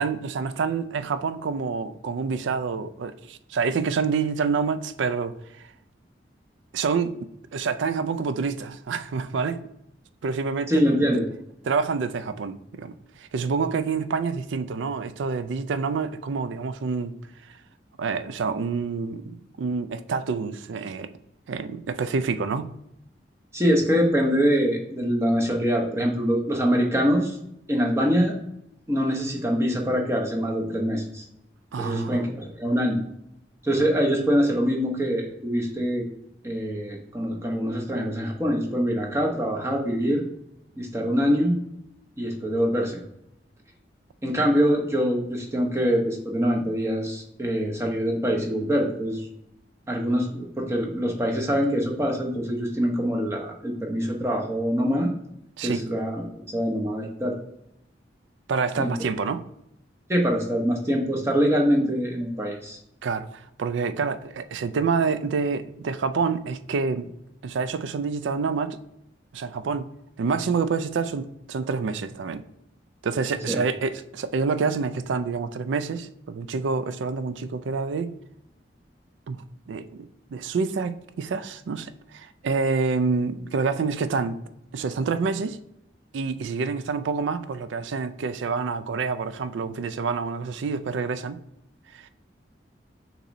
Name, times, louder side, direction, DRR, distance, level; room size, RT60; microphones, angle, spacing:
voice 1, 0.0-5.7 6.7-9.6 10.2-10.7 11.6-17.1 18.0-21.1 21.5-22.8 31.7-32.2 55.6-55.8 58.5-59.4 63.0-67.1 67.4-68.8 69.3-69.9 70.2-72.5 73.0-78.2 79.3-79.4 79.7-84.4 84.7-85.6 86.1-91.4 91.9-92.1, right 5 dB, 90° right, 0.4 m, -27 dB
voice 2, 10.7-11.3 23.5-27.4 27.7-28.4 28.9-31.2 31.8-33.0 33.6-36.1 36.4-40.2 40.8-41.6 42.2-43.0 44.2-49.3 49.9-55.1 55.6-57.4 58.8-58.9 60.1-62.8 73.5-73.6, equal, 15° right, 0.8 m, -24 dB
6.6 x 3.0 x 2.6 m
head